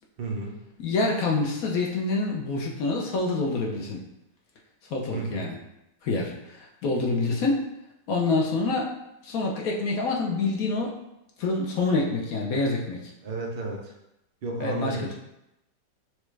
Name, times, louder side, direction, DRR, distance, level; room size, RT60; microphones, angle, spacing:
voice 1, 0.2-0.6 5.1-5.5 13.2-13.9 14.4-15.1, right 2 dB, 85° right, 0 dB, 0.5 m, -32 dB
voice 2, 0.8-4.0 4.9-5.6 6.0-7.6 8.1-8.9 9.2-11.0 11.4-13.0 14.6-15.1, left 3 dB, 60° left, -1 dB, 1.0 m, -26 dB
6.2 x 2.4 x 3.2 m, 0.88 s
omnidirectional pair, 2.0 m